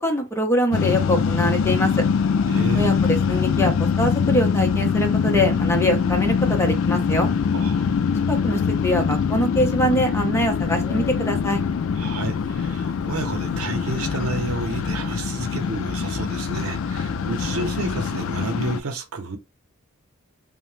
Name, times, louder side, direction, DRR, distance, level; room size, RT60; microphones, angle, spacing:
voice 1, 0.0-2.0 2.7-7.3 8.3-11.6, equal, 10° left, 0.7 m, -23 dB
sound 1, 0.7-18.8, left 6 dB, 65° left, 0.3 m, -23 dB
voice 2, 2.5-3.0 7.5-7.9 11.9-19.4, right 2 dB, 85° right, 0.7 m, -30 dB
sound 2, 10.3-18.0, left 1 dB, 20° right, 1.6 m, -40 dB
2.8 x 2.1 x 3.2 m
head